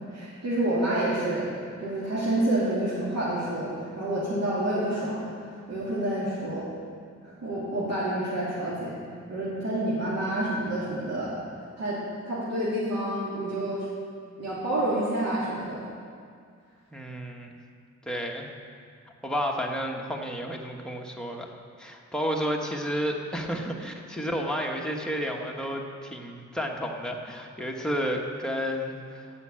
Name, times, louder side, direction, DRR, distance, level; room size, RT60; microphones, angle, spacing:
voice 1, 0.1-1.5 1.8-3.7 4.0-6.6 7.2-8.9 9.3-11.3 11.8-12.0 12.2-13.8 14.4-15.8, right 1 dB, 60° right, -9 dB, 2.9 m, -28 dB
voice 2, 16.9-17.5 18.0-18.5 19.2-21.5 21.8-29.3, equal, ahead, -1 dB, 1.3 m, -31 dB
15.0 x 5.7 x 8.8 m, 2.2 s
wide cardioid pair, 140°, 29 cm